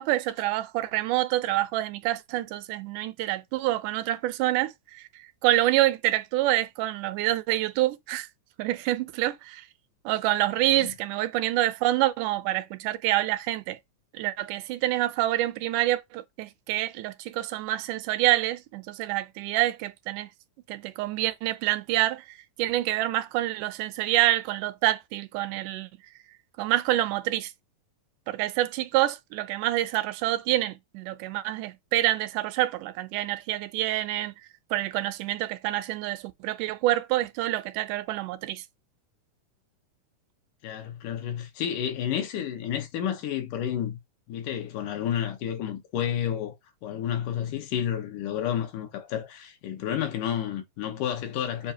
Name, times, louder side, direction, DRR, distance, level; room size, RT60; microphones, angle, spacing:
voice 1, 0.0-8.3 8.6-9.6 10.1-13.8 14.1-20.3 20.7-25.9 26.6-27.5 28.3-34.3 34.7-38.6, right 15 dB, 90° right, 2.1 m, -27 dB
voice 2, 40.6-44.0 44.3-46.5 46.8-51.7, left 9 dB, 85° left, 2.6 m, -30 dB
7.2 x 2.6 x 2.8 m
omnidirectional pair, 3.6 m